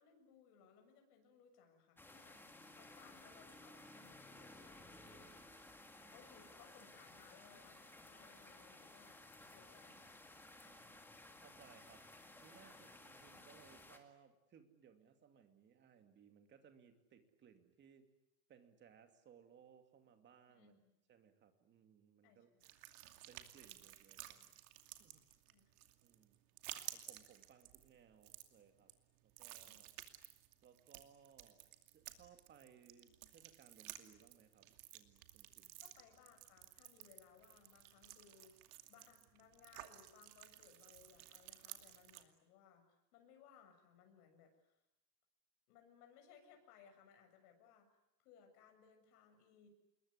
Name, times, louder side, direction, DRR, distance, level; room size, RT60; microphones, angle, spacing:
voice 1, 0.0-2.4 2.7-5.0 6.1-9.2 9.5-10.3 20.5-20.9 22.2-22.7 25.5-25.7 29.6-29.8 35.8-44.7 45.7-47.9 48.2-49.7, left 7 dB, 75° left, 4 dB, 7.4 m, -65 dB
sound 1, 2.0-14.0, left 2 dB, 5° left, 2.0 m, -58 dB
voice 2, 10.6-11.0 11.4-12.1 12.4-18.1 18.5-20.8 21.1-22.5 23.3-24.6 25.0-25.2 26.0-26.3 26.9-28.9 29.2-30.0 30.6-31.7 31.9-35.8, right 7 dB, 25° right, 7 dB, 2.5 m, -65 dB
sound 2, 22.6-42.2, right 15 dB, 70° right, 2.7 m, -55 dB
27.5 x 22.0 x 9.8 m, 0.88 s
cardioid pair, 175°, 46 cm